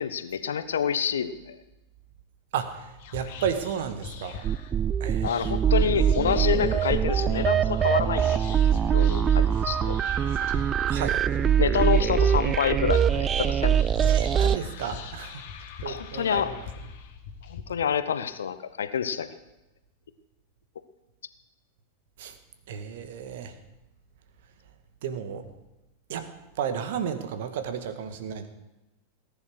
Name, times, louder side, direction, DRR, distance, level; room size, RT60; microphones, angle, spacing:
voice 1, 0.0-1.6 5.2-10.0 11.6-13.8 15.8-16.5 17.5-19.3, left 8 dB, 65° left, 12 dB, 1.0 m, -28 dB
voice 2, 2.5-4.4 5.0-5.5 10.9-11.2 14.0-15.4 15.8-16.7 22.2-22.4 22.7-23.6 25.0-25.5 26.1-26.3 26.6-28.5, right 8 dB, 55° right, 9 dB, 1.8 m, -33 dB
Whispering, 3.0-17.6, left 6 dB, 50° left, 2.0 m, -42 dB
sound 1, 4.4-14.6, right 8 dB, 25° right, 0.4 m, -23 dB
18.5 x 10.5 x 6.3 m, 0.99 s
figure-of-eight pair, 90°, 0 cm